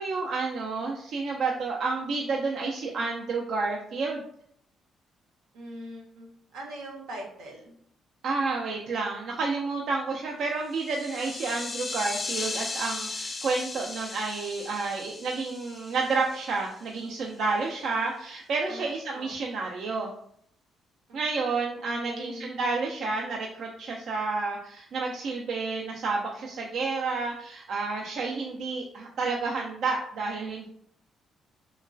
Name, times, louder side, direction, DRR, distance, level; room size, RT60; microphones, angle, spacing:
voice 1, 0.0-4.2 8.2-20.1 21.1-30.7, right 4 dB, 70° right, -1 dB, 0.3 m, -30 dB
voice 2, 5.5-7.7 18.7-18.9 19.1-19.4 21.1-21.2 22.0-22.5, equal, 90° right, 0 dB, 0.7 m, -42 dB
sound 1, 10.7-16.8, left 3 dB, 35° left, 0.3 m, -36 dB
3.0 x 2.2 x 2.5 m, 0.68 s
cardioid pair, 90°, 0 cm